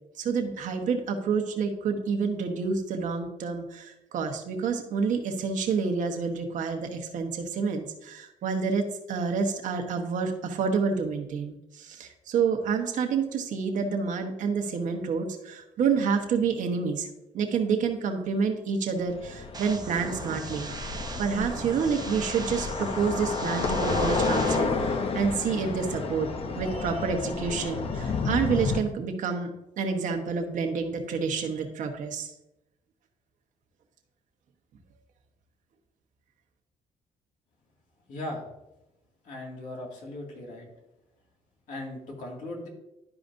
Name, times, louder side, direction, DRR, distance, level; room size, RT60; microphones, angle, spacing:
voice 1, 0.2-17.1 17.3-20.7 21.2-26.3 26.5-29.5 29.8-32.3, right 5 dB, 75° right, 4 dB, 1.2 m, -28 dB
sound 1, 19.0-28.8, left 4 dB, 45° left, 0.7 m, -31 dB
sound 2, 19.5-24.6, right 4 dB, 30° right, 0.8 m, -38 dB
voice 2, 38.1-38.4 39.2-40.7 41.7-42.7, left 1 dB, 80° left, -1 dB, 2.1 m, -38 dB
12.0 x 5.0 x 2.6 m, 0.92 s
cardioid pair, 105°, 13 cm